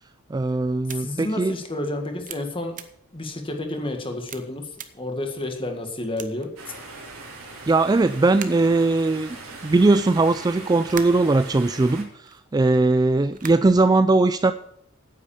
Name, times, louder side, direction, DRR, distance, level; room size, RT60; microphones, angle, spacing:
voice 1, 0.3-1.5 7.7-9.4 9.6-14.5, right 3 dB, 20° right, 12 dB, 0.3 m, -20 dB
sound 1, 0.8-1.0 1.6-1.7 2.2-2.4 2.7-2.8 3.5-3.6 4.3-4.4 4.7-4.9 5.4-5.5 6.2-6.5 7.3-7.5 8.2-8.7 9.5-11.7 12.2-12.4 13.1-13.9, right 8 dB, 40° right, 0.9 m, -40 dB
voice 2, 0.9-2.8 3.1-6.5, left 1 dB, 25° left, 4 dB, 1.8 m, -30 dB
sound 2, 6.6-12.0, right 3 dB, 85° right, 3.2 m, -40 dB
9.6 x 8.4 x 7.0 m, 0.71 s
head